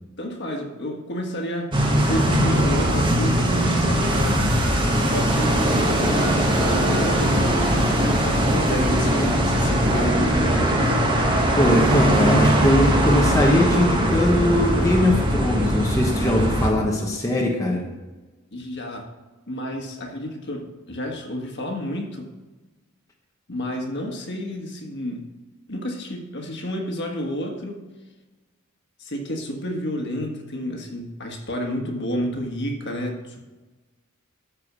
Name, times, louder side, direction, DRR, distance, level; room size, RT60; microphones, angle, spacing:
voice 1, 0.2-4.5 4.8-11.0 18.5-19.1 19.5-22.3 23.5-25.3 25.7-27.8 29.0-33.4, equal, 55° left, 2 dB, 1.6 m, -30 dB
sound 1, 1.7-16.7, right 1 dB, 20° right, 1.3 m, -20 dB
voice 2, 11.6-17.8, left 1 dB, 15° left, -1 dB, 1.0 m, -20 dB
13.0 x 4.8 x 6.1 m, 1.2 s
head